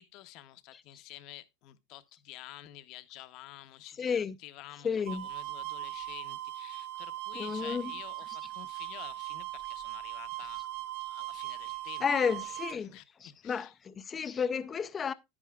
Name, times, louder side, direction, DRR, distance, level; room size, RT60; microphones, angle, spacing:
voice 1, 0.0-13.8, left 15 dB, 50° left, 0.9 m, -50 dB
voice 2, 4.0-4.3 4.8-5.3 7.4-7.9 12.0-15.1, left 6 dB, 20° left, 0.5 m, -32 dB
sound 1, 5.1-12.8, right 16 dB, 70° right, 0.5 m, -39 dB
11.0 x 9.7 x 2.4 m
supercardioid pair, 135°, 0 cm